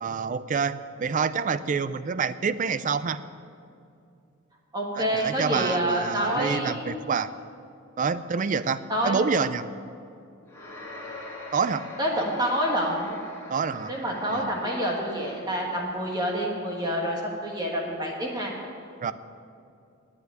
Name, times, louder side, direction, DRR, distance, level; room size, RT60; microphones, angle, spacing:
voice 1, 0.0-3.2 5.0-7.3 8.0-9.6 11.5-11.9 13.5-13.9 14.3-14.5 19.0-19.1, right 5 dB, 40° right, 14 dB, 0.4 m, -27 dB
voice 2, 4.7-7.0 8.9-9.2 12.0-13.2 13.9-18.5, equal, 20° right, -2 dB, 1.5 m, -27 dB
sound 1, 10.5-15.8, left 2 dB, 10° left, 2.2 m, -43 dB
9.3 x 8.8 x 9.6 m, 2.5 s
head